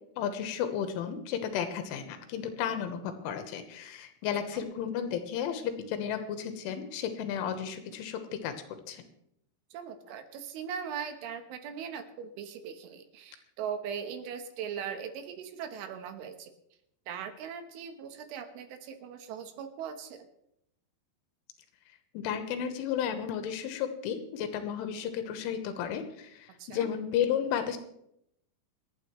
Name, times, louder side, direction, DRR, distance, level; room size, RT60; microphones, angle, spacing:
voice 1, 0.2-8.5 8.9-9.0 22.2-27.8, left 8 dB, 80° left, 8 dB, 3.5 m, -33 dB
voice 2, 9.7-16.5 17.1-20.3 26.6-26.9, right 7 dB, 80° right, 7 dB, 3.6 m, -40 dB
27.5 x 9.2 x 3.1 m, 0.78 s
omnidirectional pair, 5.6 m